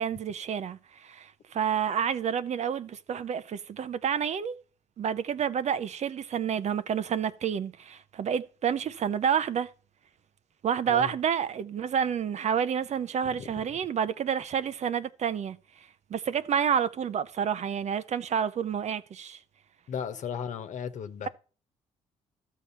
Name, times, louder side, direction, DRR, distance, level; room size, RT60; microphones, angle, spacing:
voice 1, 0.0-4.6 5.0-9.7 10.6-15.6 16.1-19.4, right 8 dB, 55° right, 0.7 m, -29 dB
voice 2, 19.9-21.3, left 7 dB, 65° left, 1.2 m, -35 dB
13.0 x 6.5 x 5.5 m
supercardioid pair, 65°, 14 cm